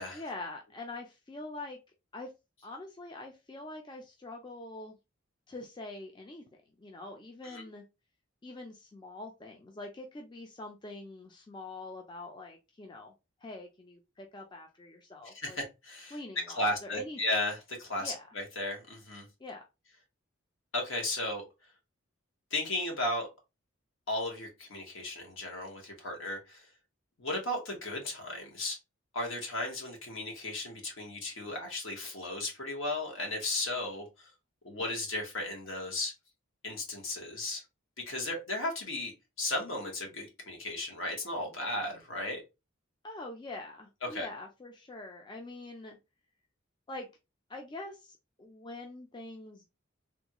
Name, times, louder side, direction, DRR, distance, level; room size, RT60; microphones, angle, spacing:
voice 1, 0.1-1.8 2.1-2.3 2.6-5.0 5.5-6.4 6.8-7.8 8.4-13.1 13.4-15.6 16.1-17.2 18.0-18.2 19.4-19.6 43.0-46.0 46.9-47.1 47.5-49.7, left 2 dB, 20° left, 0.4 m, -44 dB
voice 2, 15.3-16.2 16.5-19.2 20.7-21.5 22.5-23.3 24.1-26.7 27.2-28.8 29.1-34.3 34.6-36.1 36.6-37.6 38.1-42.4 44.0-44.3, left 1 dB, 70° left, 1.3 m, -35 dB
3.4 x 2.3 x 2.9 m
head